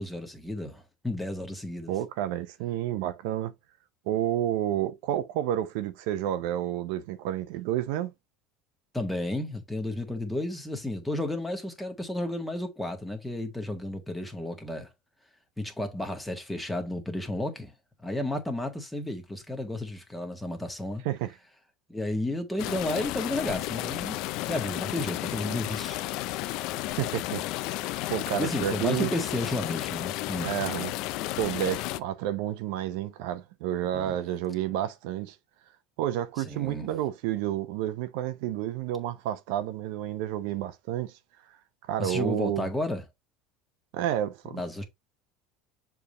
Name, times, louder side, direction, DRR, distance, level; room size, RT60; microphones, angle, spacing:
voice 1, 0.0-1.9 8.9-14.9 15.6-17.7 18.0-21.0 21.9-24.2 24.4-26.1 28.4-30.5 33.9-34.2 36.4-36.9 42.0-43.0 44.5-44.8, left 1 dB, 5° left, 1.6 m, -32 dB
voice 2, 1.9-3.5 4.1-8.1 21.0-21.3 26.9-27.4 28.1-29.1 30.4-30.9 31.4-35.4 36.0-41.1 41.8-42.7 43.9-44.8, right 12 dB, 75° right, 0.8 m, -30 dB
sound 1, 22.6-32.0, left 17 dB, 60° left, 0.5 m, -33 dB
7.0 x 3.4 x 4.0 m
cardioid pair, 150°, 0 cm